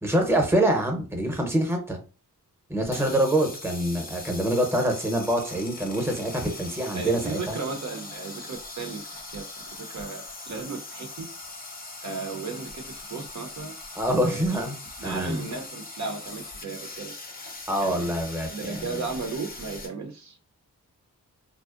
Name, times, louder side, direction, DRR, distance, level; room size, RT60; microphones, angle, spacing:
voice 1, 0.0-2.0 2.7-7.6 14.0-14.8 15.0-15.5 17.7-18.9, right 1 dB, 5° right, 3 dB, 0.7 m, -25 dB
sound 1, 2.9-19.9, left 3 dB, 25° left, 0.6 m, -41 dB
voice 2, 6.9-9.4 9.9-11.3 12.0-13.7 14.1-14.6 15.0-17.1 17.8-18.1 18.5-20.5, right 4 dB, 55° right, 3 dB, 0.6 m, -35 dB
2.6 x 2.0 x 2.4 m, 0.35 s
cardioid pair, 65°, 34 cm